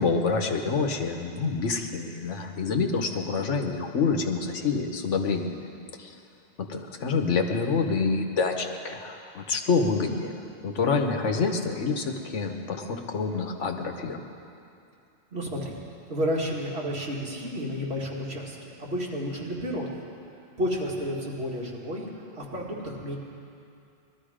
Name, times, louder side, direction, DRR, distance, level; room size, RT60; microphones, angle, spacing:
voice 1, 0.0-5.6 6.0-6.1 6.6-14.2, left 4 dB, 85° left, 5 dB, 1.4 m, -27 dB
voice 2, 15.3-15.7 16.1-20.0 20.6-23.2, equal, 60° right, -4 dB, 2.5 m, -31 dB
19.5 x 13.0 x 5.1 m, 2.6 s
omnidirectional pair, 1.2 m